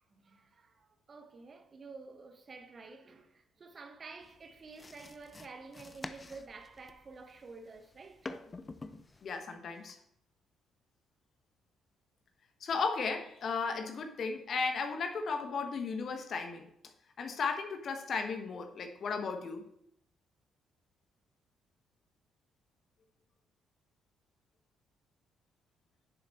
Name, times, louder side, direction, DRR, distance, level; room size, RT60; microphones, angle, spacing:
voice 1, 0.1-8.4, right 4 dB, 40° right, 1.2 m, -50 dB
sound 1, 4.2-9.4, left 3 dB, 25° left, 0.6 m, -48 dB
voice 2, 9.2-10.0 12.6-16.7 17.2-19.6, left 4 dB, 50° left, 1.1 m, -35 dB
10.0 x 7.4 x 3.1 m
figure-of-eight pair, 45°, 0 cm